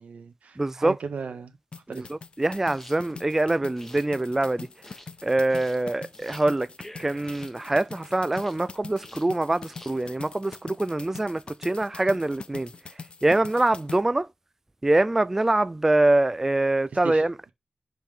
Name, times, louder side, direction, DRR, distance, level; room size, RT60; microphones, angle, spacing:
voice 1, 0.0-2.1 17.0-17.2, right 5 dB, 85° right, 1.6 m, -37 dB
voice 2, 0.6-0.9 1.9-2.0 2.4-4.7 5.2-6.7 7.0-12.7 13.2-14.3 14.8-17.5, right 2 dB, 15° right, 0.3 m, -24 dB
sound 1, 1.7-14.0, left 4 dB, 45° left, 0.5 m, -43 dB
sound 2, 2.7-10.6, left 1 dB, 15° left, 1.3 m, -49 dB
5.6 x 4.5 x 5.2 m
wide cardioid pair, 125°, 2 cm